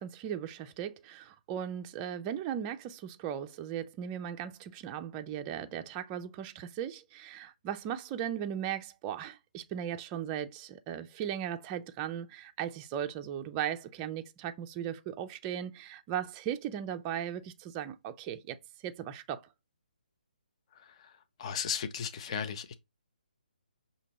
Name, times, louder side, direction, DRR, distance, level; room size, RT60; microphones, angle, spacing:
voice 1, 0.0-18.6 18.8-19.4, right 10 dB, 20° right, 0.4 m, -37 dB
voice 2, 20.8-21.1 21.4-22.7, left 7 dB, 40° left, 0.6 m, -36 dB
5.9 x 2.7 x 2.9 m
figure-of-eight pair, 145°, 5 cm